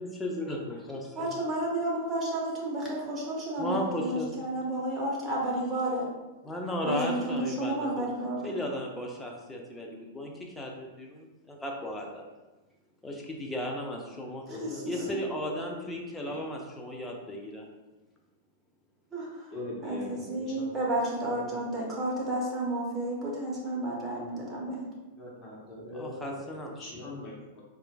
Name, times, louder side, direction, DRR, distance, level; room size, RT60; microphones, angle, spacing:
voice 1, 0.0-1.4 3.6-4.3 6.4-8.1 8.4-12.2 13.0-14.4 14.8-17.7 25.9-26.9, left 1 dB, 10° left, -1 dB, 0.6 m, -35 dB
voice 2, 1.1-6.1 6.8-8.6 14.5-14.8 19.1-19.3 19.8-24.9, right 1 dB, 20° right, -4 dB, 1.0 m, -31 dB
voice 3, 14.5-15.0 15.4-15.5 16.3-16.4 19.5-20.7 21.3-21.5 25.2-27.6, left 1 dB, 25° left, -6 dB, 1.2 m, -41 dB
4.3 x 2.5 x 2.3 m, 1.1 s
figure-of-eight pair, 100°, 0 cm